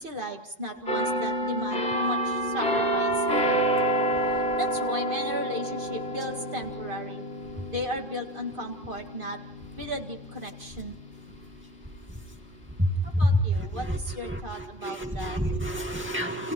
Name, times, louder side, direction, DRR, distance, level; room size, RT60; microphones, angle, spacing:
voice 1, 0.0-3.2 4.3-7.3 7.7-9.4 9.8-11.0 13.0-15.4, equal, 45° right, 1 dB, 2.2 m, -35 dB
sound 1, 0.9-12.4 12.8-13.1, right 1 dB, 60° left, 7.0 m, -29 dB
voice 2, 13.6-14.0 14.2-14.4 14.8-16.5, right 1 dB, 10° right, 2 dB, 2.1 m, -29 dB
29.5 x 29.0 x 3.1 m, 0.66 s
omnidirectional pair, 1.3 m